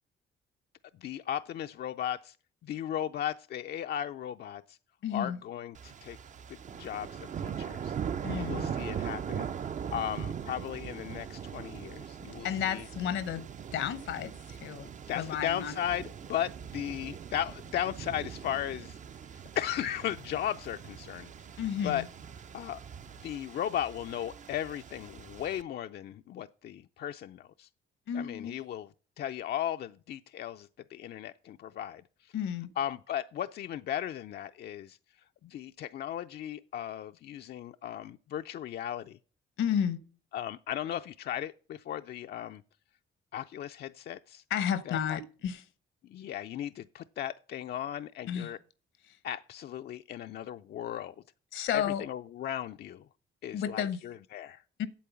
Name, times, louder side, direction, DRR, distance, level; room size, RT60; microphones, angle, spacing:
voice 1, 1.0-2.4 2.6-4.8 5.1-6.2 6.8-8.0 8.4-9.5 9.9-12.8 15.1-19.0 19.5-21.3 21.8-22.0 22.5-22.8 23.2-27.7 28.1-28.9 29.2-32.0 32.8-35.0 35.4-39.2 40.3-42.6 43.3-44.4 44.9-45.2 46.1-48.6 49.2-51.2 51.7-53.0 53.4-54.6, left 10 dB, 55° left, 0.4 m, -36 dB
voice 2, 5.0-5.4 8.2-8.7 12.4-13.4 13.7-14.9 15.1-15.7 21.6-22.1 28.1-28.5 32.3-32.7 39.6-40.0 44.5-45.6 48.3-48.5 51.5-52.0 53.5-54.0 54.8-54.9, left 9 dB, 75° left, 0.9 m, -32 dB
sound 1, 5.7-25.6, right 8 dB, 40° right, 0.5 m, -41 dB
8.6 x 7.5 x 6.9 m
cardioid pair, 90°, 20 cm